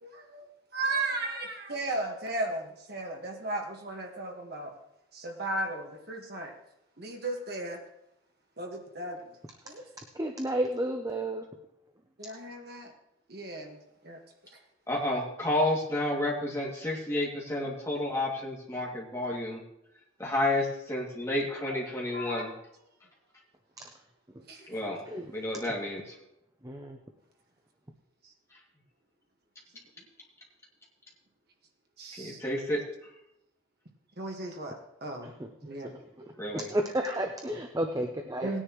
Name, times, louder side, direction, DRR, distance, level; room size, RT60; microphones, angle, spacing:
voice 1, 0.0-0.5 0.7-4.7 5.1-6.5 7.0-7.8 8.6-9.4 9.6-9.8 12.2-12.9 13.3-14.2 14.5-14.6 21.7-22.6 24.5-24.7 28.2-28.3 32.0-32.4 34.2-35.3 35.6-35.9 38.4-38.6, right 2 dB, 50° right, 2 dB, 1.6 m, -36 dB
voice 2, 10.2-11.5 25.1-25.3 26.6-27.0 36.5-38.5, right 1 dB, 15° right, 5 dB, 0.6 m, -31 dB
voice 3, 14.9-19.6 20.2-22.5 24.7-25.0 25.3-26.1 32.2-32.9 36.4-36.7, left 1 dB, 15° left, -4 dB, 2.4 m, -30 dB
18.5 x 10.0 x 3.1 m, 0.83 s
head